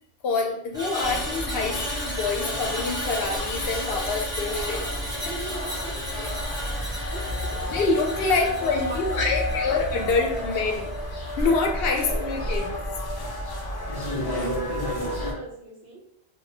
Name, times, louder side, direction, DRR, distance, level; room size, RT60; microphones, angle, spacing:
voice 1, 0.2-4.9 7.7-10.9 11.4-12.6, left 3 dB, 70° left, 1 dB, 0.8 m, -26 dB
Screech, 0.7-11.1 11.4-11.7, equal, 5° right, 0.8 m, -34 dB
sound 1, 1.0-15.3, left 1 dB, 40° left, 0.3 m, -31 dB
voice 2, 5.2-7.7 8.4-9.3 12.5-12.6 14.7-16.0, right 1 dB, 50° right, -4 dB, 0.9 m, -39 dB
2.8 x 2.3 x 2.8 m, 0.76 s
omnidirectional pair, 1.1 m